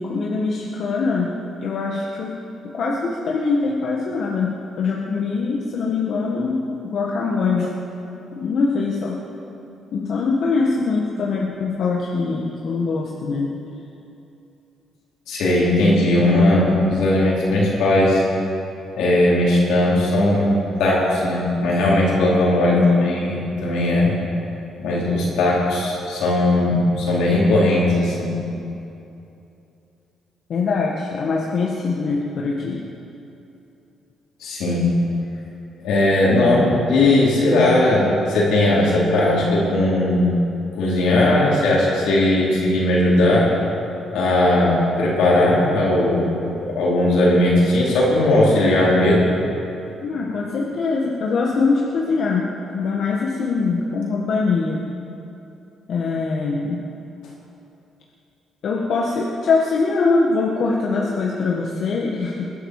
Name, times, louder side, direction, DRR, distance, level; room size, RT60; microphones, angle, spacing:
voice 1, 0.0-1.3 1.6-2.4 2.7-7.7 8.3-9.2 9.9-13.5 22.7-23.1 30.5-32.8 50.0-54.8 55.9-56.9 58.6-62.4, left 4 dB, 65° left, -2 dB, 1.6 m, -23 dB
voice 2, 15.3-18.2 19.0-24.1 24.8-28.4 34.4-34.9 35.8-40.3 40.7-43.5 44.1-49.3, left 1 dB, 85° left, -5 dB, 4.5 m, -18 dB
21.5 x 11.0 x 4.9 m, 2.8 s
cardioid pair, 90°, 0 cm